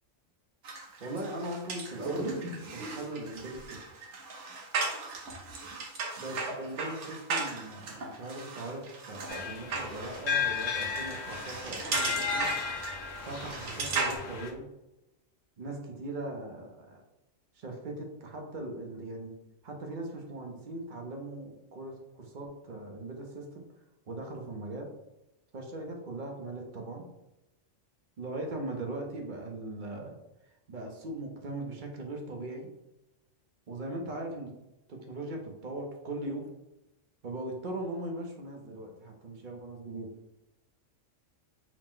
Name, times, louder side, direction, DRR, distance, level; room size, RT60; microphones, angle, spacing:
sound 1, 0.6-14.2, right 3 dB, 70° right, 1.1 m, -36 dB
voice 1, 1.0-3.8 6.2-12.5 13.3-14.7 15.6-17.0 17.5-19.3 19.6-23.6 24.1-24.9 25.5-27.1 28.2-30.2 30.4-32.7 33.7-34.5 34.9-36.5 37.2-40.1, right 1 dB, 50° right, 2 dB, 0.7 m, -39 dB
sound 2, 9.3-14.5, left 6 dB, 90° left, 1.0 m, -34 dB
4.8 x 2.0 x 3.7 m, 0.94 s
omnidirectional pair, 1.3 m